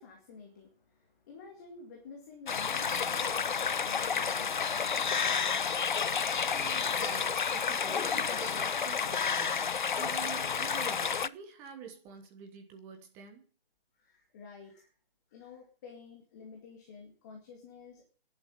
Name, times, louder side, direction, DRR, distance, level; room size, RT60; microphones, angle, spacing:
voice 1, 0.0-6.5 13.9-14.9 15.3-18.0, left 5 dB, 20° left, 1 dB, 2.2 m, -51 dB
sound 1, 2.5-11.3, left 6 dB, 55° left, 0.7 m, -30 dB
sound 2, 2.8-5.8, right 4 dB, 50° right, 2.9 m, -54 dB
voice 2, 6.5-13.4, right 7 dB, 10° right, 3 dB, 1.2 m, -47 dB
Packing tape duct tape, 7.7-8.8 9.2-9.3 9.4-9.5 10.1-10.4 11.4-11.7 12.3-12.4, left 5 dB, 85° left, 1.6 m, -44 dB
11.0 x 8.0 x 9.6 m, 0.41 s
hypercardioid pair, 170°, 30 cm